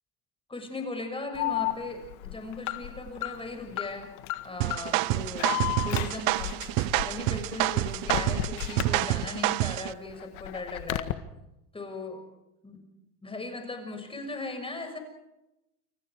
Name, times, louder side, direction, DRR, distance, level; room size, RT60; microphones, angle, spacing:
voice 1, 0.5-4.2 4.4-6.6 7.0-11.1 11.7-12.2 12.6-12.8 13.2-15.0, left 3 dB, 10° left, 5 dB, 6.4 m, -38 dB
Alarm, 1.4-9.5 9.9-11.1, left 16 dB, 75° left, 1.8 m, -34 dB
sound 1, 4.6-9.9, right 19 dB, 55° right, 0.9 m, -28 dB
29.0 x 28.5 x 4.9 m, 0.91 s
supercardioid pair, 115°, 43 cm